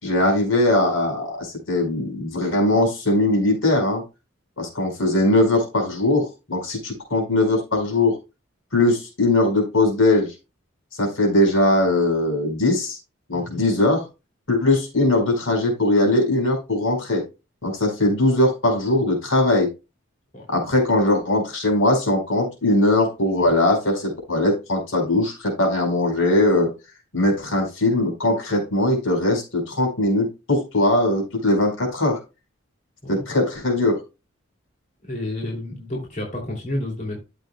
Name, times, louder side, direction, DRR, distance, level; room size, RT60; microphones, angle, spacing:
voice 1, 0.0-4.0 4.6-8.2 8.7-10.3 10.9-13.0 13.3-14.0 14.5-17.2 17.6-19.7 20.5-26.7 27.1-32.2 33.1-34.0, left 2 dB, 75° left, 2 dB, 5.0 m, -20 dB
voice 2, 35.0-37.2, left 1 dB, 35° left, -1 dB, 2.9 m, -30 dB
13.0 x 7.5 x 2.3 m, 0.28 s
head